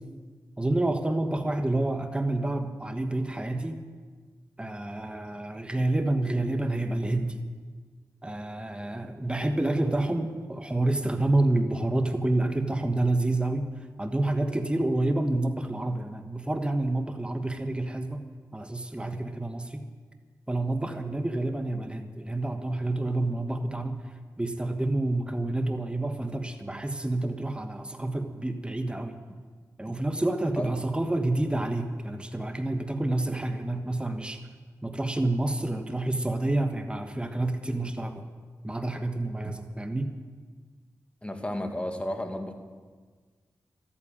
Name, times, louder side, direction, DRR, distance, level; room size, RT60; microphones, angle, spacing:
voice 1, 0.6-3.8 4.6-7.4 8.2-13.7 14.0-18.2 18.5-19.8 20.5-24.0 24.4-29.2 29.8-34.4 34.8-38.3 38.6-40.1, right 2 dB, 15° right, 7 dB, 1.3 m, -28 dB
voice 2, 41.2-42.5, left 1 dB, 15° left, 4 dB, 2.2 m, -32 dB
13.5 x 8.7 x 8.9 m, 1.5 s
supercardioid pair, 40°, 7 cm